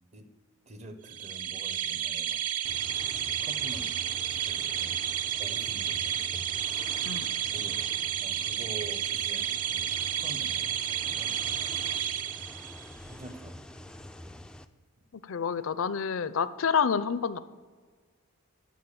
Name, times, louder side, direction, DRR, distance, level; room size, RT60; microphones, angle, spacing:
voice 1, 0.7-2.4 3.3-3.9 4.4-5.1 5.4-6.2 7.5-7.9 8.2-11.4 13.1-13.7, right 1 dB, 30° right, 9 dB, 0.9 m, -46 dB
sound 1, 1.1-12.9, right 9 dB, 85° right, 0.6 m, -31 dB
sound 2, 2.6-14.7, left 1 dB, 5° left, 0.3 m, -46 dB
voice 2, 15.2-17.4, left 6 dB, 65° left, 15 dB, 0.5 m, -28 dB
15.0 x 5.2 x 6.8 m, 1.5 s
head